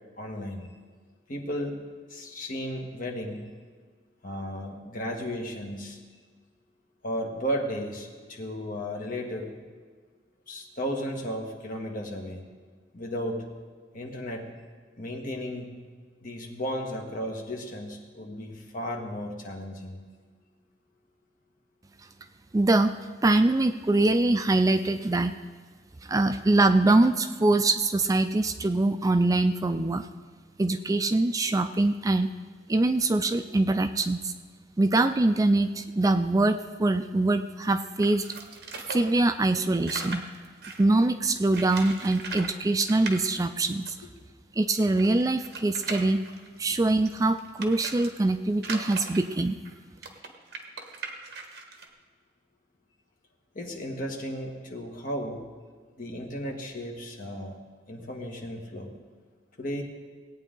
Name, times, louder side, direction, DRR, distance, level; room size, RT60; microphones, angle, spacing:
voice 1, 0.2-0.7 1.3-1.8 2.1-3.4 4.2-6.0 7.0-9.5 10.5-12.4 12.9-13.4 13.9-14.5 15.0-15.7 16.2-20.0 53.5-55.4 56.0-57.6 57.9-58.9 59.6-59.8, equal, 50° left, 1 dB, 1.7 m, -34 dB
voice 2, 22.5-22.9 23.2-25.3 26.0-30.1 30.6-32.3 32.7-34.3 34.8-38.3 38.9-40.2 40.8-43.9 44.6-46.2 46.6-49.6, right 2 dB, 20° right, 9 dB, 0.3 m, -23 dB
sound 1, 38.0-40.9 41.5-42.5 42.8-43.2 43.9-44.0 44.2-44.3 44.8-48.1 48.6-51.9, right 4 dB, 60° right, 1.4 m, -39 dB
18.5 x 8.9 x 3.8 m, 1.5 s
head